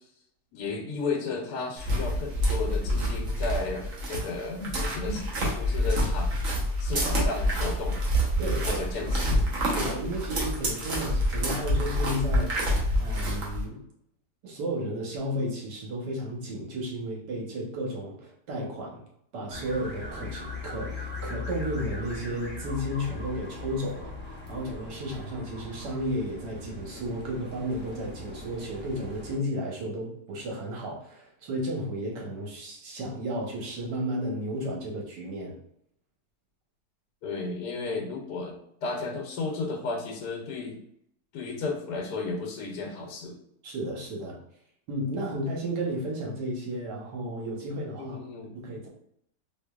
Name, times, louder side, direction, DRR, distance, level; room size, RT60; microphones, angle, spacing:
voice 1, 0.5-5.3 5.5-6.4 6.8-8.0 8.7-9.4 37.2-38.5 38.8-40.8 41.3-43.4 48.0-48.5, left 3 dB, 75° left, 0 dB, 1.3 m, -33 dB
sound 1, 1.8-13.6, equal, 55° right, 1.3 m, -27 dB
voice 2, 8.4-9.2 9.7-13.8 14.4-19.0 19.3-35.5 43.6-44.4 44.9-48.2 48.5-48.9, equal, 85° right, -2 dB, 1.6 m, -33 dB
sound 2, 19.5-29.4, left 3 dB, 15° left, 0.4 m, -39 dB
3.8 x 3.0 x 2.3 m, 0.72 s
omnidirectional pair, 1.8 m